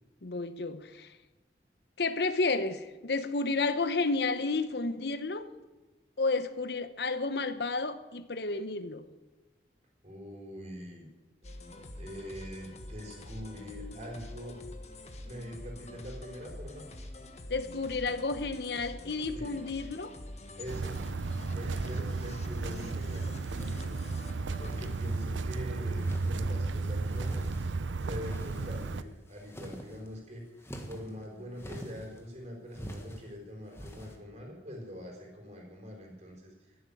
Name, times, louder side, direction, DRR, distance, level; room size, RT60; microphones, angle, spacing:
voice 1, 0.2-1.2 2.0-5.5 6.2-9.1 17.5-20.2, left 3 dB, 60° left, 0.9 m, -31 dB
voice 2, 10.0-11.1 12.0-14.6 15.2-16.8 19.3-19.6 20.6-21.0 21.4-24.0 24.6-27.5 28.0-36.9, equal, 35° right, 4.3 m, -44 dB
sound 1, 11.4-25.3, left 1 dB, 35° left, 1.4 m, -46 dB
sound 2, 20.7-29.0, right 3 dB, 85° right, 0.6 m, -34 dB
sound 3, 24.6-25.5 25.9-26.5 27.0-27.7 28.2-29.0 29.4-30.1 30.6-31.1 31.6-32.2 32.7-33.2 33.7-34.2, equal, 15° left, 1.4 m, -44 dB
15.5 x 8.0 x 8.6 m
head